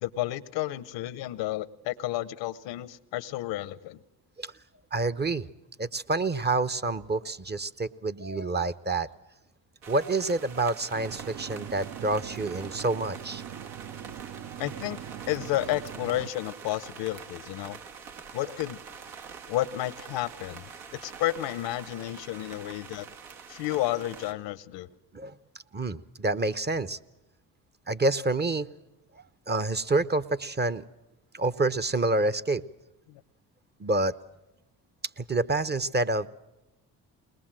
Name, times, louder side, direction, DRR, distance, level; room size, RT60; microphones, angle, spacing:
voice 1, 0.0-4.0 14.6-15.0 15.3-17.8 18.3-18.8 19.5-23.1 23.5-24.9 33.1-33.2, left 15 dB, 75° left, 18 dB, 0.9 m, -31 dB
voice 2, 4.9-5.5 5.8-9.1 9.9-13.4 25.1-25.3 25.7-27.0 27.9-28.7 29.5-30.8 31.3-32.6 33.8-34.1 35.2-36.3, right 2 dB, 25° right, 12 dB, 0.7 m, -28 dB
sound 1, 9.8-24.3, right 6 dB, 80° right, 1.7 m, -45 dB
sound 2, 10.9-16.3, right 9 dB, 55° right, 0.8 m, -41 dB
21.5 x 20.0 x 7.5 m, 0.98 s
hypercardioid pair, 55°, 44 cm